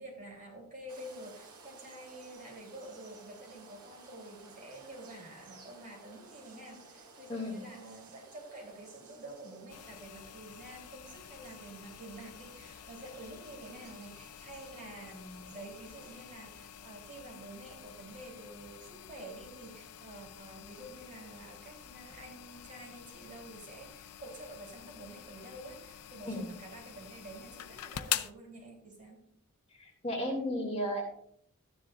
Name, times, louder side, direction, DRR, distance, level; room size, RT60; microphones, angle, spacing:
voice 1, 0.0-29.2, right 1 dB, 35° right, -1 dB, 3.2 m, -49 dB
sound 1, 0.9-16.2, right 3 dB, 75° right, 2.1 m, -56 dB
voice 2, 7.3-7.6 26.2-26.5 29.7-31.1, equal, 30° left, 0 dB, 2.2 m, -34 dB
sound 2, 9.7-28.3, left 11 dB, 85° left, 0.5 m, -46 dB
13.0 x 10.0 x 2.4 m, 0.67 s
head